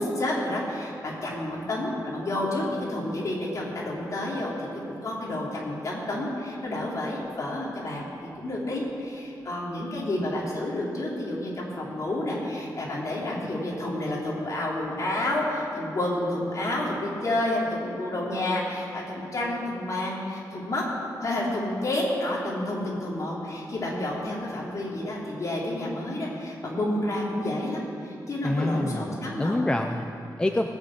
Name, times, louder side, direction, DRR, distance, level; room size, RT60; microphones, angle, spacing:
voice 1, 0.0-20.8 21.2-29.6, left 1 dB, 45° left, -4 dB, 3.2 m, -30 dB
voice 2, 28.4-29.1 29.4-30.7, left 1 dB, 10° left, 4 dB, 0.5 m, -26 dB
19.0 x 6.4 x 7.9 m, 2.7 s
wide cardioid pair, 165°, 7 cm